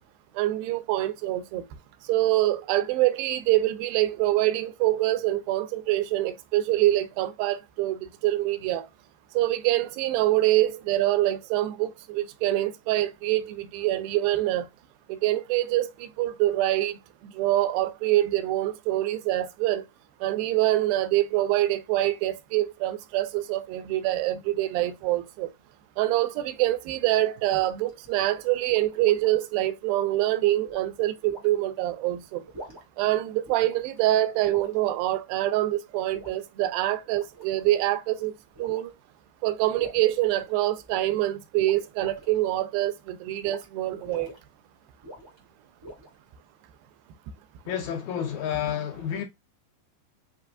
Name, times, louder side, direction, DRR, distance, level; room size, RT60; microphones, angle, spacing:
voice 1, 0.4-1.6 2.0-8.9 9.3-14.7 15.1-19.8 20.2-25.5 26.0-32.4 33.0-38.3 38.6-38.9 39.4-44.3, right 15 dB, 85° right, 2.4 m, -25 dB
sound 1, 27.1-29.4 30.7-30.9 31.3-31.5 32.4-33.0 33.5-34.0 34.4-34.8 36.1-36.4 37.0-37.8 38.5-38.9 39.8-40.9 41.6-42.4 43.4-43.7 43.9-44.4 45.0-45.4 45.8-46.3, right 1 dB, 35° right, 0.4 m, -45 dB
voice 2, 47.7-49.2, left 9 dB, 80° left, 1.7 m, -30 dB
6.1 x 2.9 x 2.4 m
omnidirectional pair, 4.2 m